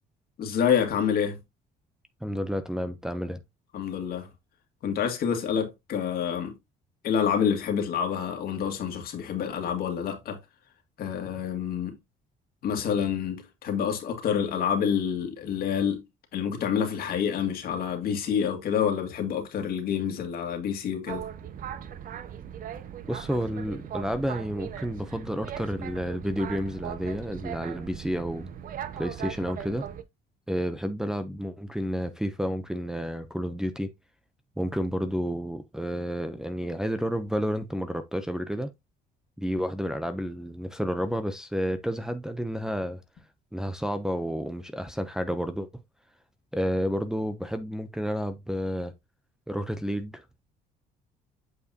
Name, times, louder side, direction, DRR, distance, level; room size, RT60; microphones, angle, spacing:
voice 1, 0.4-1.4 3.7-4.3 4.8-6.5 7.0-10.4 11.0-12.0 12.6-16.0 16.3-21.2, left 8 dB, 65° left, 2.1 m, -27 dB
voice 2, 2.2-3.4 23.1-28.5 29.0-29.8 30.5-33.9 34.6-38.7 39.4-43.0 43.5-45.7 46.5-48.9 49.5-50.2, equal, 5° right, 0.7 m, -30 dB
Boat Water vehicle, 21.1-30.0, right 9 dB, 55° right, 0.8 m, -39 dB
8.2 x 4.7 x 2.8 m
cardioid pair, 110°, 17 cm